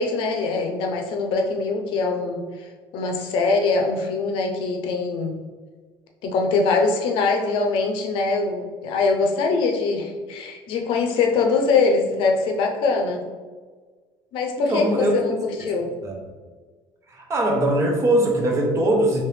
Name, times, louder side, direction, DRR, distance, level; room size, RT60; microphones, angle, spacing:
voice 1, 0.0-5.4 6.2-13.2 14.3-15.4 15.7-15.9, left 4 dB, 70° left, 2 dB, 0.6 m, -23 dB
voice 2, 14.7-15.1 15.6-15.7 16.0-16.2 17.1-19.2, right 1 dB, 35° right, 1 dB, 0.7 m, -21 dB
3.3 x 2.9 x 3.2 m, 1.4 s
cardioid pair, 130°, 9 cm